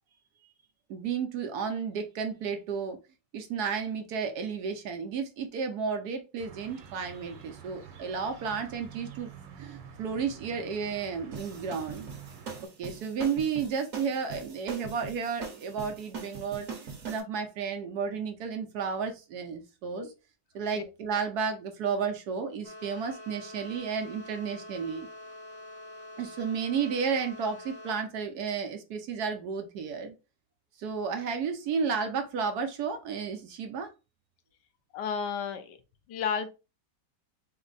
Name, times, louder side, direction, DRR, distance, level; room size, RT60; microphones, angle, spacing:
voice 1, 0.9-3.0 3.3-9.3 9.6-12.1 12.8-20.1 20.5-25.1 26.2-30.1 30.8-33.9, right 6 dB, 70° right, 1.1 m, -32 dB
sound 1, 6.4-12.6, right 8 dB, 85° right, 1.5 m, -48 dB
sound 2, 11.3-17.2, right 5 dB, 50° right, 1.4 m, -41 dB
sound 3, 22.6-28.0, left 1 dB, 50° left, 0.9 m, -46 dB
voice 2, 34.9-35.8 36.1-36.5, left 6 dB, 75° left, 1.2 m, -32 dB
4.3 x 2.1 x 3.8 m
omnidirectional pair, 1.9 m